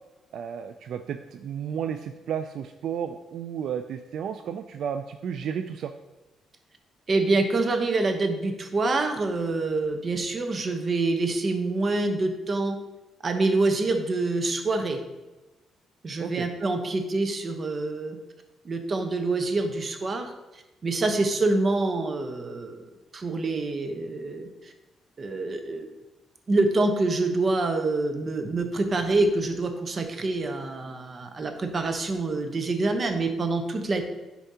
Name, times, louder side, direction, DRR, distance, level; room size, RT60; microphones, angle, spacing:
voice 1, 0.3-5.9 16.2-16.5, right 8 dB, 70° right, 8 dB, 0.3 m, -32 dB
voice 2, 7.1-12.8 13.2-15.0 16.0-18.2 18.6-22.8 23.1-24.7 25.2-25.8 26.5-34.0, right 2 dB, 40° right, 6 dB, 0.9 m, -26 dB
10.0 x 4.5 x 2.8 m, 1.1 s
cardioid pair, 90°, 0 cm